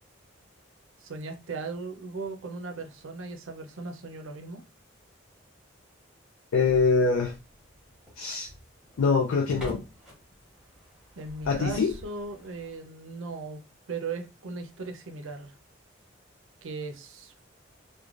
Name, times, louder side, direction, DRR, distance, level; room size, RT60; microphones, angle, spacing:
voice 1, 1.0-4.6 11.2-13.6 13.9-15.6 16.6-17.4, right 4 dB, 80° right, 0.5 m, -38 dB
voice 2, 6.5-7.3 8.2-8.5 9.0-9.8 11.5-11.9, left 4 dB, 85° left, 0.4 m, -24 dB
sound 1, 6.5-12.8, equal, 5° right, 1.0 m, -46 dB
3.1 x 2.2 x 2.4 m
head